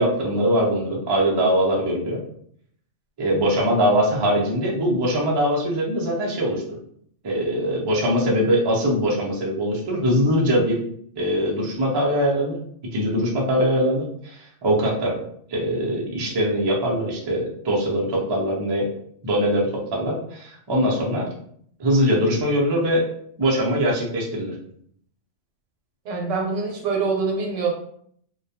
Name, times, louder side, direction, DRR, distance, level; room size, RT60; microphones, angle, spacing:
voice 1, 0.0-2.2 3.2-6.6 7.2-10.8 11.2-12.6 12.9-15.2 15.5-18.9 19.2-21.3 21.8-23.1 23.4-24.5, equal, 45° right, -3 dB, 0.3 m, -22 dB
voice 2, 26.0-27.7, right 4 dB, 80° right, 1 dB, 1.0 m, -24 dB
2.2 x 2.1 x 2.7 m, 0.65 s
omnidirectional pair, 1.3 m